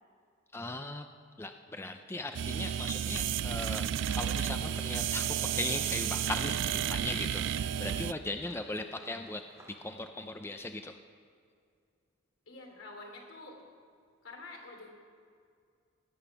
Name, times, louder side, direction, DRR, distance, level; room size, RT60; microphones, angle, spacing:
voice 1, 0.5-1.0 1.4-9.4 9.8-11.0, left 2 dB, 10° left, 6 dB, 0.5 m, -39 dB
sound 1, 2.3-8.1, right 9 dB, 65° right, 0.3 m, -32 dB
sound 2, 3.9-9.8, right 1 dB, 15° right, 2.8 m, -58 dB
voice 2, 12.5-13.6 14.2-14.9, left 2 dB, 75° left, 1 dB, 3.0 m, -48 dB
19.5 x 9.6 x 5.9 m, 2.3 s
head